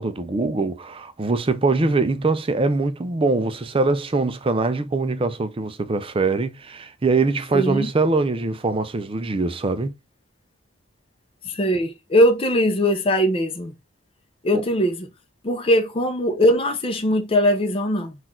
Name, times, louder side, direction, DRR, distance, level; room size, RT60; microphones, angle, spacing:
voice 1, 0.0-9.9 14.5-14.6, right 3 dB, 25° right, 0.4 m, -23 dB
voice 2, 7.5-7.9 11.4-13.7 14.4-15.1 15.4-18.2, equal, 25° left, 0.6 m, -20 dB
4.2 x 2.4 x 4.2 m
head